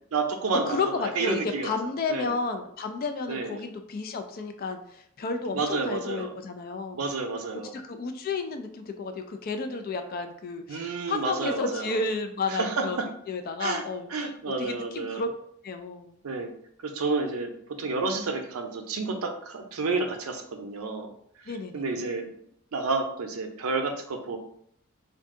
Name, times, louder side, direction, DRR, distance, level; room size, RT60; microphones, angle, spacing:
voice 1, 0.1-1.7 2.1-2.3 3.3-3.5 5.5-6.3 6.9-7.7 10.7-11.9 12.5-13.0 13.6-13.8 14.1-15.2 16.2-16.5 16.8-17.5 17.8-21.1 21.4-22.3 22.7-24.4, right 3 dB, 90° right, 5 dB, 0.5 m, -30 dB
voice 2, 0.7-7.0 7.7-13.0 13.3-14.3 14.6-15.3 15.6-16.2 17.8-17.9 21.5-22.0, left 4 dB, 45° left, 7 dB, 0.3 m, -32 dB
2.6 x 2.3 x 3.6 m, 0.68 s
head